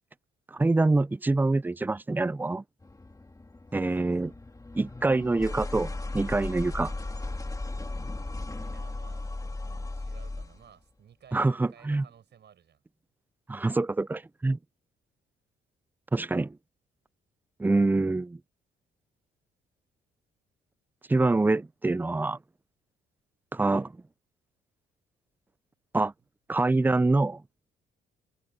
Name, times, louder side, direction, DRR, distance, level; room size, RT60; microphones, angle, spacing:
voice 1, 0.5-2.6 3.7-4.3 4.8-6.9 11.3-12.0 13.5-14.6 16.1-16.6 17.6-18.4 21.1-22.4 23.5-23.9 25.9-26.1 26.5-27.4, right 2 dB, 10° right, 0.4 m, -25 dB
sound 1, 2.8-10.7, left 2 dB, 15° left, 3.0 m, -36 dB
voice 2, 3.7-4.4 8.6-9.3 9.6-12.8, right 8 dB, 60° right, 7.9 m, -56 dB
cardioid pair, 90°, 20 cm